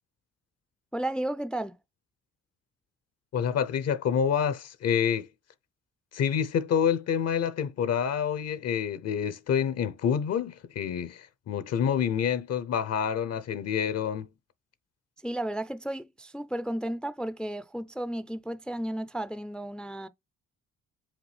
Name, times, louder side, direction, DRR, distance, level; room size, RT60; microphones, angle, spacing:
voice 1, 0.9-1.8 15.2-20.1, right 1 dB, 5° left, 0.4 m, -33 dB
voice 2, 3.3-5.3 6.1-14.3, left 8 dB, 55° left, 0.6 m, -27 dB
5.2 x 2.7 x 3.2 m
cardioid pair, 90°, 30 cm